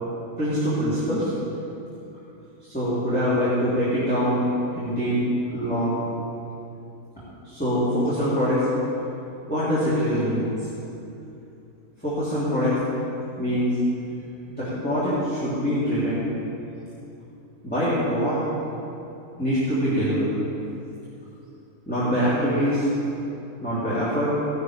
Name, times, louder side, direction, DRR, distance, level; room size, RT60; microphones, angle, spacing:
voice 1, 0.4-1.3 2.7-4.4 4.7-5.2 5.5-6.0 7.4-8.7 9.5-10.7 12.0-12.8 13.3-13.7 14.6-16.3 17.6-18.4 19.4-20.3 21.9-22.9 23.6-24.4, equal, 5° left, -13 dB, 3.4 m, -24 dB
17.5 x 12.5 x 3.5 m, 2.8 s
omnidirectional pair, 1.6 m